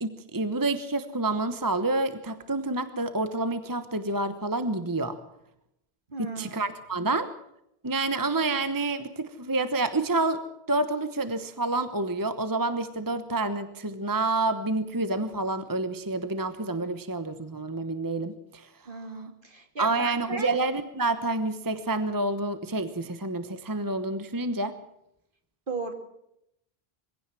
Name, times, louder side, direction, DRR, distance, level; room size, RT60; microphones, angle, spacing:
voice 1, 0.0-5.2 6.2-7.3 7.8-10.4 10.7-18.7 19.8-24.8, right 2 dB, 20° right, 11 dB, 1.1 m, -28 dB
voice 2, 6.1-6.6 18.8-20.6 25.7-25.9, right 3 dB, 55° right, 5 dB, 2.8 m, -36 dB
22.5 x 16.5 x 7.6 m, 0.80 s
omnidirectional pair, 1.1 m